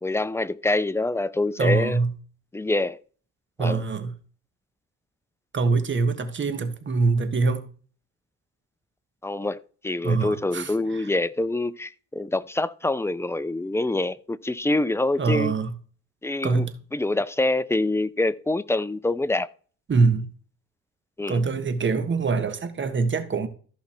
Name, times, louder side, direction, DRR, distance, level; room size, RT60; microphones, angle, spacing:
voice 1, 0.0-2.0 2.5-3.0 3.6-3.8 9.2-15.5 16.2-19.5 21.2-21.4, left 2 dB, 10° left, 0.5 m, -26 dB
voice 2, 1.6-2.1 3.6-4.1 5.5-7.7 10.0-11.1 15.2-15.7 16.4-16.8 19.9-20.3 21.3-23.5, right 4 dB, 40° right, 1.5 m, -24 dB
14.0 x 5.5 x 4.5 m
cardioid pair, 90°, 30 cm